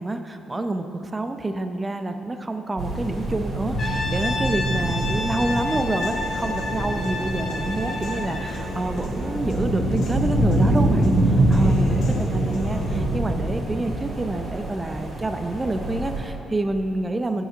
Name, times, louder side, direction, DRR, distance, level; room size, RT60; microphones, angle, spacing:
voice 1, 0.0-11.2 11.5-17.4, right 2 dB, 20° right, 8 dB, 0.5 m, -28 dB
sound 1, 2.8-16.2, right 1 dB, 45° right, 2.1 m, -25 dB
Brass instrument, 3.8-8.6, left 3 dB, 45° left, 1.0 m, -30 dB
Human voice / Piano, 5.0-13.0, left 3 dB, 80° left, 1.1 m, -40 dB
7.9 x 4.9 x 6.2 m, 2.7 s
cardioid pair, 90°, 0 cm